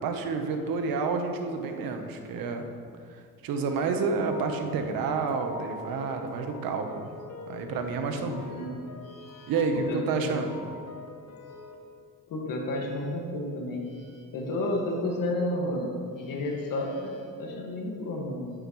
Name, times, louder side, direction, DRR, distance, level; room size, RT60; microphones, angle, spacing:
voice 1, 0.0-2.6 3.4-7.1 7.5-8.6 9.5-10.5, right 4 dB, 85° right, 5 dB, 1.1 m, -29 dB
sound 1, 3.7-11.8, left 3 dB, 50° left, 1.2 m, -45 dB
voice 2, 8.1-8.7 9.0-10.3 12.3-18.5, left 1 dB, 70° left, 0 dB, 1.9 m, -32 dB
11.0 x 9.0 x 3.2 m, 2.2 s
cardioid pair, 130°, 34 cm